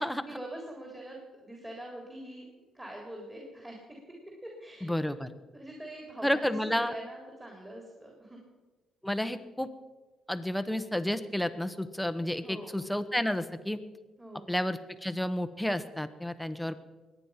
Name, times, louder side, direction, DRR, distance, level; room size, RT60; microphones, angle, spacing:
voice 1, 0.0-3.8 4.4-5.2 5.5-8.4 12.4-12.8 14.2-14.5, right 1 dB, 15° right, -1 dB, 3.7 m, -44 dB
voice 2, 4.8-5.3 6.2-6.9 9.0-9.7 10.3-13.8 14.5-16.8, left 1 dB, 5° left, 10 dB, 1.1 m, -31 dB
22.0 x 9.4 x 5.8 m, 1.2 s
cardioid pair, 90°, 0 cm